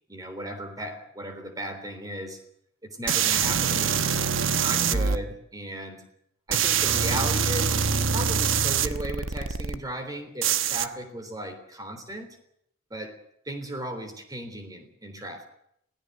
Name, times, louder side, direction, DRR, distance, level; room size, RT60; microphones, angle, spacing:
voice 1, 0.1-2.4 2.8-4.2 4.6-6.0 6.5-12.4 12.9-13.1 13.4-15.5, right 1 dB, 20° right, 7 dB, 3.5 m, -36 dB
sound 1, 3.1-5.2 6.5-9.8 10.4-10.9, right 7 dB, 75° right, 1.1 m, -24 dB
27.0 x 17.0 x 6.7 m, 0.72 s
head